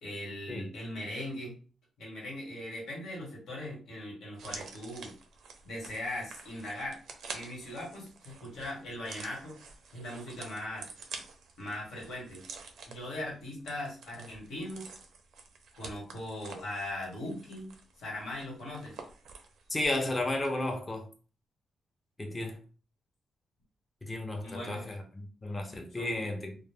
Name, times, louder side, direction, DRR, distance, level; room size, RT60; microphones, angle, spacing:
voice 1, 0.0-1.6 2.0-5.1 5.6-7.0 7.3-9.5 9.9-10.9 11.6-12.4 12.9-14.9 15.8-17.7 18.0-19.0 24.4-24.9 26.0-26.2, left 1 dB, 85° left, 1.2 m, -39 dB
sound 1, 4.3-20.0 20.3-20.5, right 4 dB, 85° right, 0.5 m, -48 dB
voice 2, 19.7-21.1 22.2-22.6 24.0-26.6, left 1 dB, 20° left, 0.5 m, -33 dB
2.1 x 2.0 x 3.3 m
cardioid pair, 105°, 0 cm